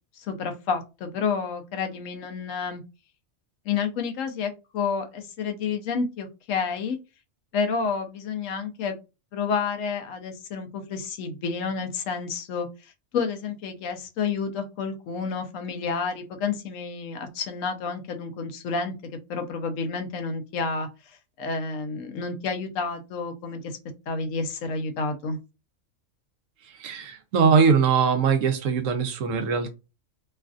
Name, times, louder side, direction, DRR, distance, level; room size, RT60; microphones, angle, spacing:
voice 1, 0.2-2.8 3.6-7.0 7.5-9.0 9.3-18.9 19.3-23.8 24.1-25.4, left 5 dB, 80° left, 5 dB, 1.0 m, -30 dB
voice 2, 26.8-29.7, right 6 dB, 80° right, 7 dB, 1.0 m, -21 dB
3.1 x 2.5 x 2.4 m, 0.28 s
omnidirectional pair, 1.4 m